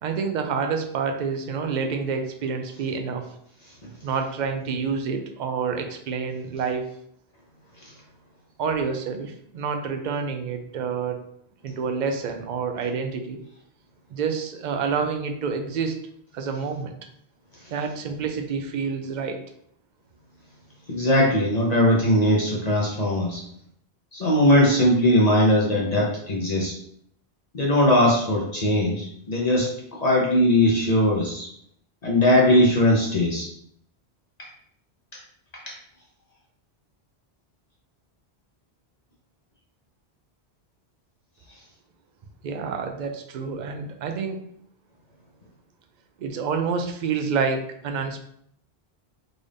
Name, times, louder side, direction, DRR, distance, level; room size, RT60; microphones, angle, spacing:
voice 1, 0.0-3.3 4.0-6.9 8.6-11.2 11.6-13.4 14.1-16.0 16.3-16.9 17.7-19.4 42.4-44.4 46.2-48.2, right 5 dB, 55° right, 6 dB, 0.5 m, -28 dB
voice 2, 20.9-23.4 24.1-26.7 27.5-29.7 30.0-31.5 32.0-33.5 35.7-35.8, left 1 dB, 45° left, -3 dB, 0.7 m, -20 dB
3.8 x 2.5 x 3.3 m, 0.69 s
omnidirectional pair, 1.1 m